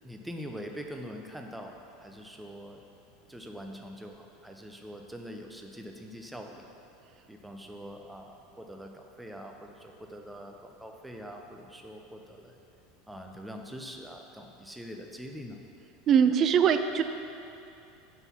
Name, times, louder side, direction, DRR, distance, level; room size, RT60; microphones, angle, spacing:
voice 1, 0.0-1.7 2.0-2.8 3.3-6.7 7.3-12.6 13.1-15.6, equal, 5° right, 2 dB, 0.8 m, -43 dB
voice 2, 16.1-17.0, right 7 dB, 40° right, 9 dB, 0.4 m, -22 dB
6.2 x 5.3 x 5.8 m, 2.7 s
figure-of-eight pair, 80°, 0 cm